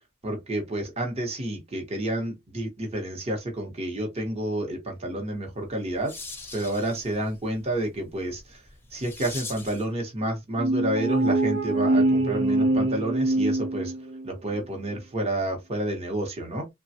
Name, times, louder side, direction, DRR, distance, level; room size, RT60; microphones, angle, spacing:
voice 1, 0.2-6.1 6.5-8.6 8.9-13.9 14.2-16.6, right 1 dB, 30° right, 0.9 m, -30 dB
sound 1, 5.5-9.9, left 3 dB, 10° left, 0.7 m, -43 dB
sound 2, 10.6-14.3, right 2 dB, 65° right, 0.7 m, -24 dB
3.2 x 2.2 x 2.7 m
head